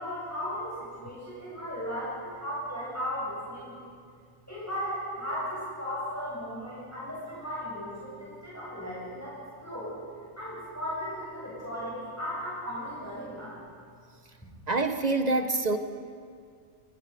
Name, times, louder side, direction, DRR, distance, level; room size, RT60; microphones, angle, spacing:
voice 1, 0.0-3.9 4.5-9.9 10.4-13.6, equal, 10° left, -9 dB, 7.8 m, -36 dB
voice 2, 14.7-15.8, right 3 dB, 30° right, 7 dB, 1.2 m, -26 dB
24.0 x 23.5 x 5.5 m, 2.2 s
omnidirectional pair, 1.5 m